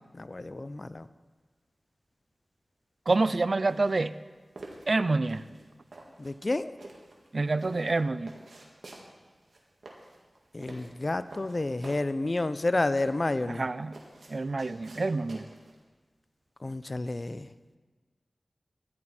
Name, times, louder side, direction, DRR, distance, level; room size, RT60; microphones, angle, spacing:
voice 1, 0.1-1.1 6.2-6.7 10.5-13.7 16.6-17.5, left 2 dB, 45° left, 13 dB, 0.5 m, -30 dB
voice 2, 3.1-4.1 4.9-5.4 7.3-8.4 13.6-13.9 14.3-15.5, right 3 dB, 65° right, 15 dB, 0.4 m, -27 dB
sound 1, 3.1-15.8, right 2 dB, 85° right, 1.8 m, -49 dB
13.0 x 11.0 x 4.3 m, 1.4 s
cardioid pair, 40°, 0 cm